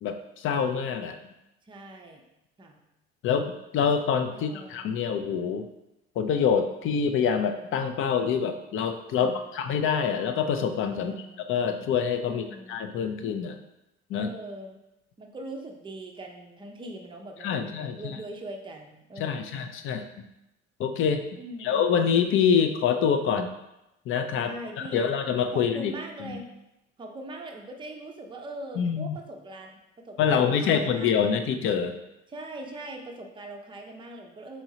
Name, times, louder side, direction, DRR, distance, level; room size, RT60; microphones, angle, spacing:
voice 1, 0.0-1.2 3.2-5.7 6.2-13.6 14.1-14.3 17.4-18.0 19.2-20.3 20.8-21.2 21.6-23.5 24.1-24.5 24.8-25.9 26.2-26.4 28.8-29.2 30.2-32.0, left 7 dB, 35° left, 7 dB, 0.4 m, -26 dB
voice 2, 1.7-2.2 2.6-2.8 4.3-4.8 9.2-9.7 11.0-11.4 12.3-12.8 14.1-14.8 15.2-19.6 21.4-21.8 24.4-25.1 25.5-26.5 27.0-31.4 32.3-34.6, right 1 dB, 15° right, 2 dB, 0.6 m, -41 dB
4.5 x 3.1 x 2.7 m, 0.90 s
figure-of-eight pair, 60°, 38 cm